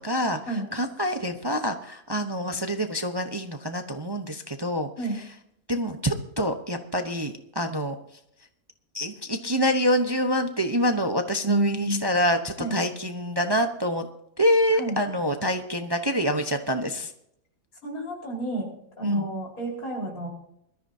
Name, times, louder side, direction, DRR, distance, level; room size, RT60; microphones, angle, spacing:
voice 1, 0.0-4.9 5.1-5.2 5.7-8.0 8.9-14.1 14.4-17.1 19.0-19.2, equal, 20° right, 6 dB, 0.8 m, -26 dB
voice 2, 11.5-12.0 12.6-12.8 14.8-15.0 17.8-18.7 19.0-20.3, right 1 dB, 80° left, -2 dB, 5.2 m, -29 dB
21.5 x 13.5 x 2.8 m, 0.74 s
omnidirectional pair, 1.5 m